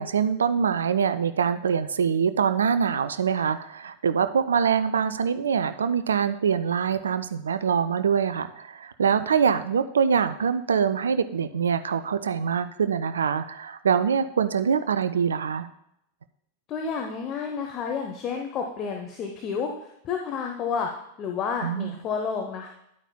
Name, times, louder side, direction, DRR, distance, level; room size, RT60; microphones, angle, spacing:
voice 1, 0.0-15.7 21.6-21.9, right 7 dB, 70° right, 12 dB, 0.4 m, -24 dB
voice 2, 16.7-20.9 21.2-22.7, left 6 dB, 35° left, 2 dB, 0.9 m, -30 dB
11.0 x 8.9 x 2.2 m, 0.78 s
figure-of-eight pair, 90°, 0 cm